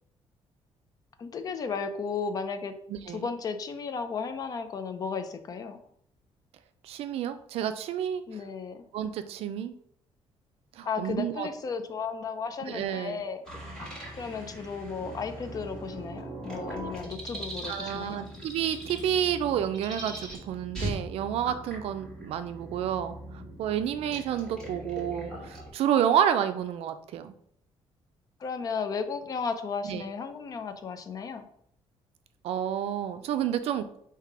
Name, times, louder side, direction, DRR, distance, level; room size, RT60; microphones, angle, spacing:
voice 1, 1.2-2.8 3.1-5.8 8.3-8.8 10.8-13.4 14.2-18.2 28.4-31.4, left 5 dB, 35° left, 9 dB, 0.4 m, -34 dB
voice 2, 2.9-3.3 6.8-8.4 8.9-9.7 10.8-11.5 12.7-13.2 17.7-27.3 29.8-30.0 32.4-34.0, right 9 dB, 70° right, 10 dB, 0.4 m, -30 dB
sound 1, 13.4-25.7, right 1 dB, 5° left, 1.5 m, -40 dB
3.7 x 2.7 x 4.6 m, 0.68 s
cardioid pair, 160°, 10 cm